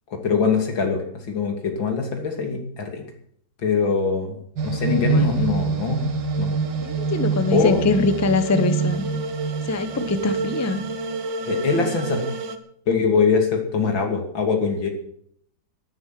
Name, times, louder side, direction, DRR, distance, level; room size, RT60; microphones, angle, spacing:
voice 1, 0.1-3.1 3.6-6.0 6.4-6.5 7.5-7.8 11.4-12.2 12.9-14.9, left 5 dB, 80° left, 4 dB, 3.5 m, -23 dB
sound 1, 4.6-12.6, right 4 dB, 70° right, 2.0 m, -26 dB
voice 2, 6.8-9.1 9.7-10.8, left 3 dB, 15° left, 11 dB, 0.6 m, -23 dB
13.0 x 11.0 x 7.6 m, 0.66 s
omnidirectional pair, 2.1 m